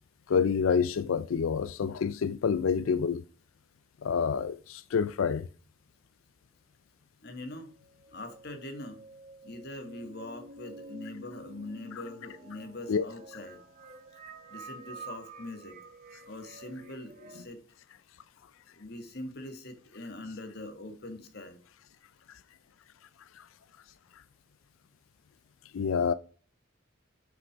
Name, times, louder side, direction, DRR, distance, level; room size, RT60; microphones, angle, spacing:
voice 1, 0.3-3.2 4.0-5.4 12.9-13.0 25.7-26.1, left 6 dB, 80° left, 0.4 m, -27 dB
voice 2, 7.2-7.7 8.1-9.0 9.4-13.6 14.5-15.8 16.3-17.6 18.7-21.6, left 2 dB, 50° left, 1.7 m, -43 dB
sound 1, 7.8-17.5, right 3 dB, 40° right, 1.3 m, -49 dB
8.1 x 5.9 x 5.0 m
head